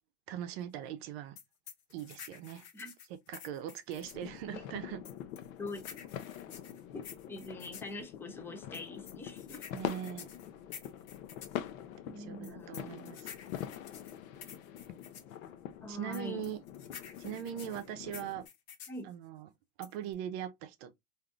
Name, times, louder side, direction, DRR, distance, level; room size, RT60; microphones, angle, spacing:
voice 1, 0.3-1.4 1.9-2.7 3.3-5.0 9.7-10.3 12.1-13.3 15.9-16.6 17.2-18.5 19.0-19.5 19.8-20.9, right 10 dB, 50° right, 0.7 m, -41 dB
sound 1, 1.4-4.3 5.0-7.9 8.7-11.6 12.4-15.3 16.1-19.0 19.8-20.1, left 8 dB, 40° left, 0.9 m, -50 dB
sound 2, 4.0-18.5, left 10 dB, 75° left, 0.7 m, -44 dB
voice 2, 5.6-6.0 6.9-9.7 12.0-13.1 15.8-16.4 18.9-19.1, left 2 dB, 5° left, 0.4 m, -44 dB
3.7 x 2.6 x 2.3 m
supercardioid pair, 135°, 40 cm